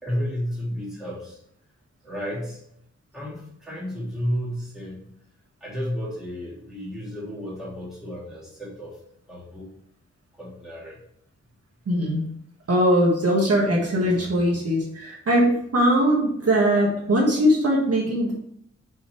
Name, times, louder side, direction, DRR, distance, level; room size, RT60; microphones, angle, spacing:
voice 1, 0.0-1.4 2.0-2.6 3.1-5.0 5.6-9.0 9.3-9.7 10.4-11.0, equal, ahead, -7 dB, 2.8 m, -32 dB
voice 2, 11.9-12.3 12.7-18.3, equal, 55° right, -2 dB, 1.7 m, -21 dB
6.0 x 5.7 x 4.6 m, 0.71 s
wide cardioid pair, 180°, 29 cm